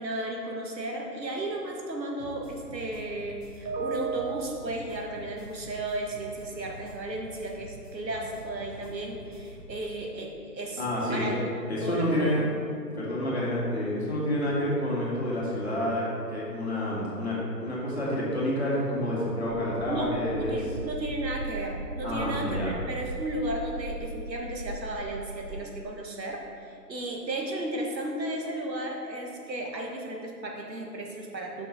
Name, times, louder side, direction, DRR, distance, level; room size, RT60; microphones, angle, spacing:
voice 1, 0.0-11.5 11.8-12.4 19.9-20.2 20.5-31.7, right 2 dB, 85° right, 0 dB, 1.6 m, -34 dB
sound 1, 2.2-9.9, right 1 dB, 5° right, 1.3 m, -47 dB
voice 2, 10.8-11.4 11.7-12.4 12.9-20.6 22.0-22.7, left 1 dB, 40° left, -6 dB, 1.9 m, -29 dB
sound 2, 19.7-25.6, right 1 dB, 15° left, 1.8 m, -38 dB
6.0 x 5.7 x 5.5 m, 2.4 s
hypercardioid pair, 170°, 50 cm